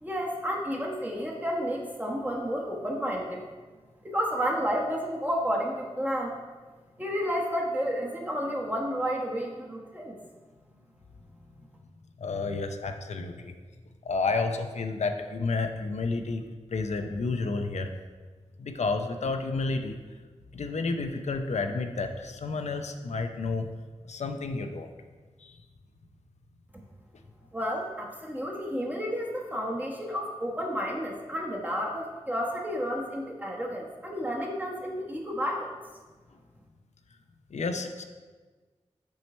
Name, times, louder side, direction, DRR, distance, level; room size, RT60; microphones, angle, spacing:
voice 1, 0.0-3.4 4.0-6.3 7.0-10.2 27.5-35.7, equal, 15° right, -2 dB, 1.1 m, -31 dB
voice 2, 12.2-13.5 14.0-16.4 16.7-17.9 18.6-20.0 20.5-23.7 24.1-24.9 25.4-25.6 37.5-38.0, left 3 dB, 80° left, 6 dB, 0.5 m, -30 dB
6.3 x 4.5 x 4.2 m, 1.4 s
wide cardioid pair, 65°, 11 cm